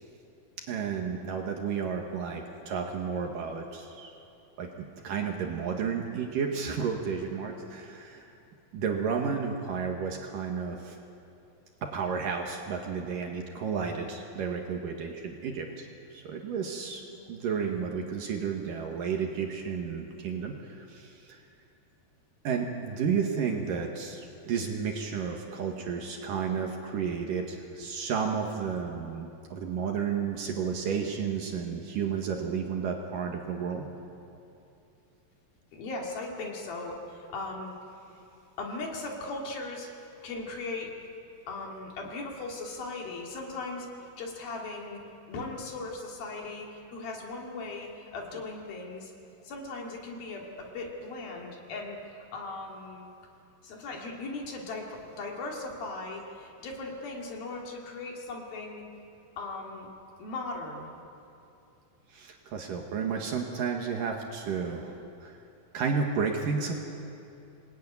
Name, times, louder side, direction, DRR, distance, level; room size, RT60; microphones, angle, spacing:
voice 1, 0.7-4.1 4.6-8.2 8.7-11.0 11.8-15.9 16.1-17.0 17.3-21.4 22.4-33.9 62.1-65.3 65.7-66.8, right 6 dB, 65° right, 1 dB, 3.1 m, -32 dB
voice 2, 35.7-37.8 38.6-39.9 40.2-40.9 41.5-43.9 44.2-45.0 45.3-49.1 49.4-52.0 52.3-53.1 53.6-58.8 59.4-59.9 60.2-60.9, left 3 dB, 70° left, 0 dB, 4.6 m, -38 dB
27.0 x 18.5 x 9.7 m, 2.8 s
omnidirectional pair, 4.4 m